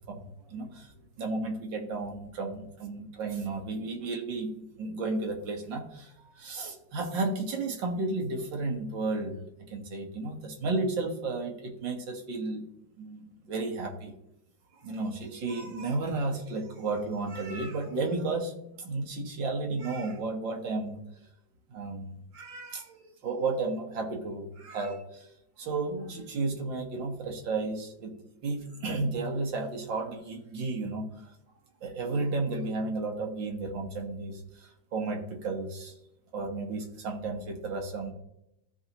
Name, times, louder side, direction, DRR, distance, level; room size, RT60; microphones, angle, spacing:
voice 1, 0.1-9.4 9.7-12.7 13.0-14.1 14.8-18.5 18.8-21.0 21.7-28.1 28.4-31.3 31.8-35.9 36.3-38.1, right 3 dB, 80° right, 2 dB, 2.1 m, -33 dB
14.5 x 4.9 x 2.9 m, 0.82 s
omnidirectional pair, 2.0 m